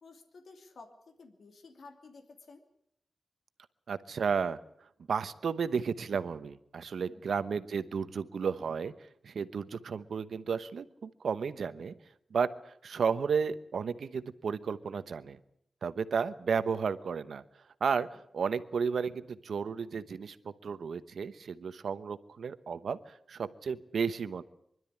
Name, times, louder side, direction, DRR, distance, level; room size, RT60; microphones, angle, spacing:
voice 1, 0.0-0.9 1.2-2.6 7.0-7.2 18.0-18.1, left 4 dB, 75° left, 4 dB, 2.8 m, -53 dB
voice 2, 3.9-4.6 5.1-8.9 9.2-11.9 12.3-15.4 15.8-17.4 17.8-20.4 20.6-24.4, right 6 dB, 85° right, 13 dB, 1.0 m, -33 dB
24.5 x 12.5 x 9.9 m, 0.75 s
wide cardioid pair, 100°, 0 cm